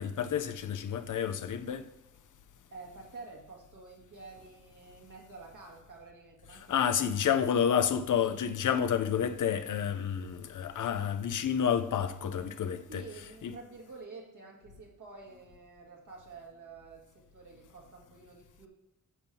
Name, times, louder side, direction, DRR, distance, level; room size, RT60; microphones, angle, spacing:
voice 1, 0.0-1.9 6.7-13.0 13.4-13.5, left 8 dB, 65° left, 0.6 m, -29 dB
voice 2, 2.7-6.8 12.9-18.7, right 3 dB, 65° right, 1.9 m, -49 dB
9.8 x 7.1 x 2.7 m
wide cardioid pair, 140°, 33 cm